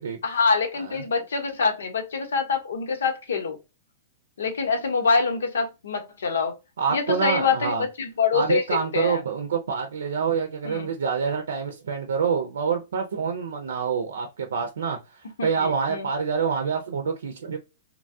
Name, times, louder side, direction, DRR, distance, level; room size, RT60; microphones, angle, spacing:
voice 1, 0.2-3.6 4.4-6.5 6.9-8.6 8.9-9.2 10.6-10.9 15.4-16.1, left 4 dB, 80° left, 0.9 m, -25 dB
voice 2, 6.8-7.8 8.3-17.6, right 6 dB, 80° right, 0.6 m, -27 dB
3.0 x 2.3 x 2.7 m
hypercardioid pair, 125°, 0 cm